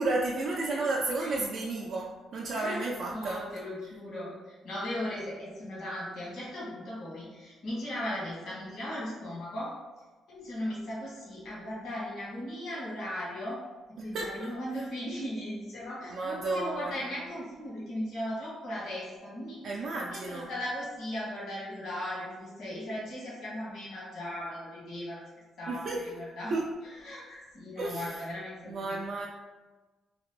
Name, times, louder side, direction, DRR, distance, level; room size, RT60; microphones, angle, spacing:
voice 1, 0.0-3.4 14.0-14.8 16.1-17.0 19.6-20.5 25.7-26.0 26.5-26.6 27.8-28.2 28.7-29.3, right 2 dB, 65° right, -3 dB, 0.4 m, -32 dB
voice 2, 3.1-9.7 10.3-13.6 14.0-19.6 20.1-25.2 25.6-26.5 26.8-29.0, left 1 dB, 70° left, -7 dB, 1.3 m, -37 dB
2.9 x 2.5 x 3.2 m, 1.2 s
cardioid pair, 90°, 0 cm